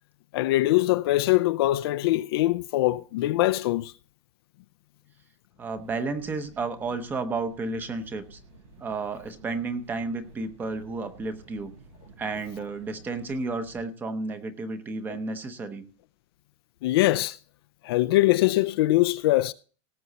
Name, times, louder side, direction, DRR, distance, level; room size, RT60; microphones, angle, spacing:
voice 1, 0.3-3.9 16.8-17.4 17.8-19.5, left 17 dB, 50° left, 0.4 m, -22 dB
voice 2, 5.6-8.4 8.8-11.7 12.2-15.8, right 3 dB, 10° right, 0.7 m, -32 dB
sound 1, 5.7-13.8, right 3 dB, 90° right, 7.1 m, -52 dB
18.0 x 6.9 x 4.1 m
supercardioid pair, 175°, 17 cm